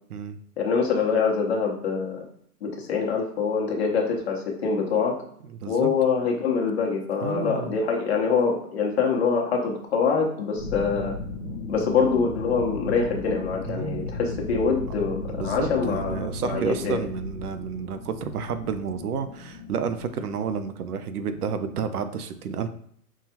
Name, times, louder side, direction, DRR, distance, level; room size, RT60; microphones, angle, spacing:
voice 1, 0.6-2.2 2.6-5.2 5.7-11.2 11.7-17.0, left 5 dB, 45° left, 0 dB, 0.9 m, -25 dB
voice 2, 5.5-5.9 7.2-7.7 13.7-14.1 15.3-22.7, right 6 dB, 70° right, 10 dB, 0.6 m, -30 dB
sound 1, 10.6-21.8, left 2 dB, 90° left, 0.9 m, -36 dB
5.5 x 2.3 x 2.9 m, 0.66 s
hypercardioid pair, 165°, 47 cm